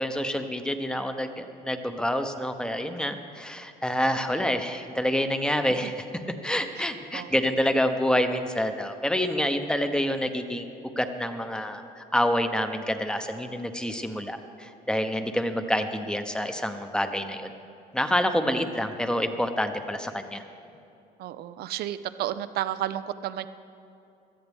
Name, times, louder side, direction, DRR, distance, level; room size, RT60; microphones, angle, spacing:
voice 1, 0.0-5.9 6.4-17.5 17.9-20.4, equal, 5° left, 7 dB, 0.9 m, -27 dB
voice 2, 21.2-23.5, right 12 dB, 70° right, 13 dB, 0.5 m, -32 dB
18.0 x 13.0 x 3.6 m, 2.8 s
cardioid pair, 110°, 17 cm